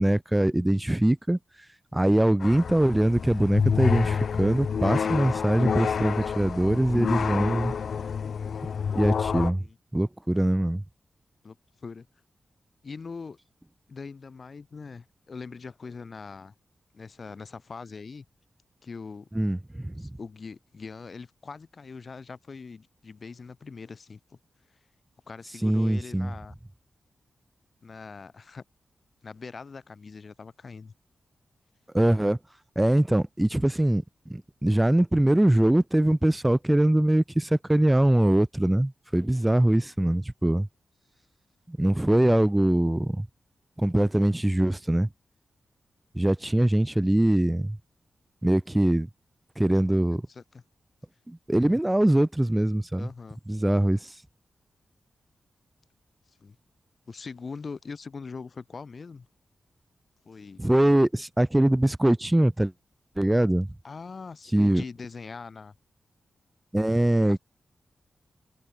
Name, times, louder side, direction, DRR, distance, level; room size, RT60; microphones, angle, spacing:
voice 1, 0.0-1.4 1.9-7.7 8.9-9.6 9.9-10.8 19.3-20.0 25.6-26.3 31.9-32.4 32.8-40.7 41.7-43.3 43.8-45.1 46.1-47.8 48.4-49.1 49.6-50.2 51.3-53.1 53.5-54.2 60.6-62.7 63.2-63.7 64.5-64.8 66.7-67.4, right 1 dB, 10° right, 0.4 m, -23 dB
sound 1, 2.4-9.5, left 6 dB, 75° left, 0.8 m, -28 dB
voice 2, 11.4-12.1 12.8-13.4 13.9-16.5 16.9-18.2 18.8-19.3 20.0-24.4 25.3-26.5 27.8-28.6 29.2-30.9 50.3-50.6 53.0-53.4 56.4-56.6 57.1-59.3 60.2-60.6 63.8-65.7 67.3-67.4, left 4 dB, 55° left, 1.4 m, -42 dB
cardioid pair, 75°, 0 cm